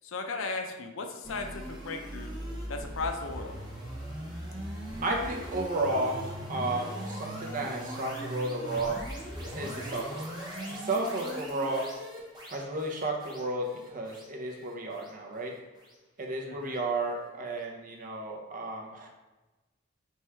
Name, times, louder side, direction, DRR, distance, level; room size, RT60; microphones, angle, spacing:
voice 1, 0.0-2.4 2.7-3.6 16.5-16.8, left 3 dB, 70° left, 4 dB, 0.5 m, -36 dB
sound 1, 1.2-16.4, right 1 dB, 20° right, 1.1 m, -40 dB
voice 2, 5.0-9.0 9.5-10.3 10.7-11.9 12.5-15.5 16.2-19.1, right 2 dB, 40° right, 0 dB, 0.7 m, -33 dB
3.5 x 3.1 x 4.4 m, 1.1 s
head